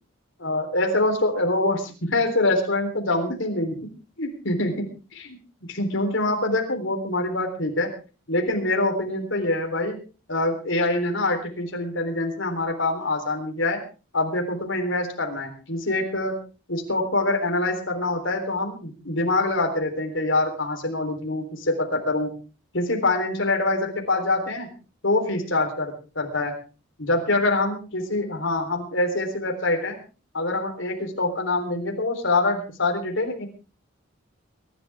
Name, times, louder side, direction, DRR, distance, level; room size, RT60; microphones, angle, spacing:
voice 1, 0.4-3.8 4.2-4.9 5.7-7.9 8.3-10.0 10.3-13.8 14.1-16.3 16.7-22.3 22.7-24.7 25.0-26.5 27.0-30.0 30.3-33.5, left 2 dB, 65° left, 3 dB, 3.8 m, -25 dB
23.5 x 11.5 x 3.6 m, 0.35 s
head